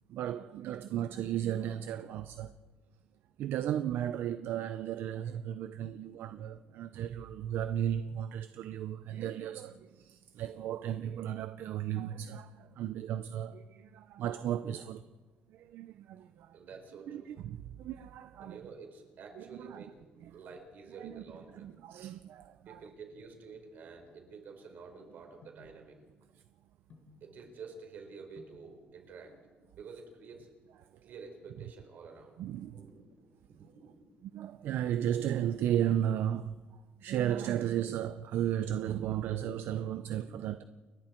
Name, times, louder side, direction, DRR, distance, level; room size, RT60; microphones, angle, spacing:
voice 1, 0.1-2.6 3.4-15.0 15.5-16.6 17.1-18.6 19.4-19.8 20.2-20.3 21.0-21.2 21.5-22.8 32.4-32.9 34.2-36.6 37.0-40.6, right 10 dB, 80° right, 0.6 m, -35 dB
voice 2, 5.9-6.4 16.5-17.3 18.4-19.9 20.3-21.7 22.6-26.0 27.2-29.4 29.6-30.5 31.0-32.3 32.7-34.1 40.2-40.4, right 4 dB, 60° right, 4.8 m, -50 dB
sound 1, 18.4-18.8 19.5-20.1 21.3-21.7 22.4-24.8 25.4-25.8 26.9-27.3 28.1-28.2 28.4-28.7 29.8-30.4 30.7-30.8 31.0-31.1 31.5-31.9 32.2-33.2 33.7-34.1 34.5-35.6 35.9-36.0, left 4 dB, 45° left, 3.7 m, -62 dB
29.5 x 22.0 x 4.5 m
cardioid pair, 155°, 4 cm